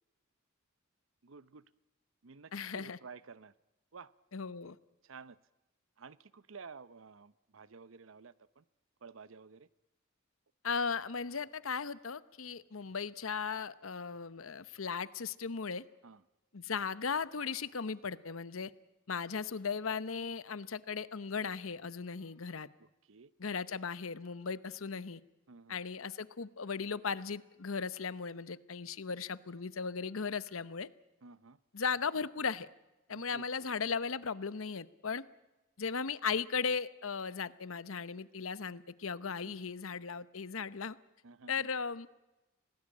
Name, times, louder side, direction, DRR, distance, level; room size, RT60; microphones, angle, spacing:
voice 1, 1.2-1.7 2.2-3.5 3.9-4.1 5.0-5.4 6.0-8.6 9.0-9.7 16.0-16.2 22.8-23.3 25.5-25.8 31.2-31.6 33.1-33.7 39.4-39.7 41.2-41.7, right 5 dB, 70° right, 17 dB, 0.8 m, -53 dB
voice 2, 2.5-3.0 4.3-4.8 10.6-15.8 16.5-18.7 19.1-22.7 23.4-25.2 25.7-30.9 31.7-32.7 33.1-35.2 35.8-41.0 41.5-42.1, left 5 dB, 80° left, 16 dB, 0.9 m, -37 dB
26.0 x 18.5 x 8.6 m, 1.0 s
head